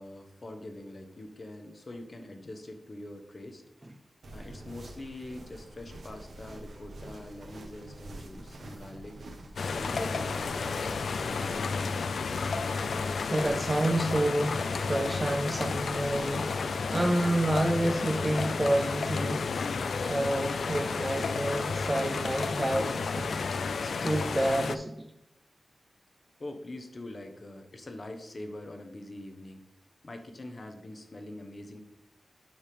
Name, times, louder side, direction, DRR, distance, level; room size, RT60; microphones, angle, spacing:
voice 1, 0.0-3.6 4.3-9.2 9.7-11.7 26.4-29.7 30.0-31.8, left 1 dB, 40° left, 5 dB, 0.9 m, -44 dB
sound 1, 4.2-16.6, right 1 dB, 75° right, 1.0 m, -47 dB
sound 2, 9.6-24.8, left 4 dB, 85° left, 0.3 m, -32 dB
voice 2, 13.3-19.5 20.1-23.4 23.8-25.1, right 1 dB, 20° right, 5 dB, 0.4 m, -29 dB
7.1 x 3.5 x 5.1 m, 0.84 s
wide cardioid pair, 115°, 0 cm